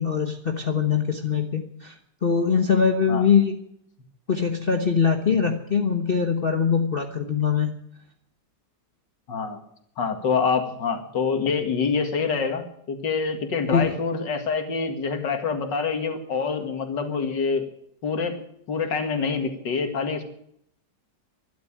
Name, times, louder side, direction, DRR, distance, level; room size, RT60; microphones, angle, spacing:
voice 1, 0.0-3.6 4.3-7.7 13.7-13.9, left 6 dB, 35° left, 4 dB, 1.2 m, -22 dB
voice 2, 9.3-9.6 10.0-17.6 18.0-18.4 18.7-20.2, left 5 dB, 75° left, 6 dB, 2.5 m, -26 dB
12.5 x 12.0 x 8.8 m, 0.70 s
omnidirectional pair, 2.0 m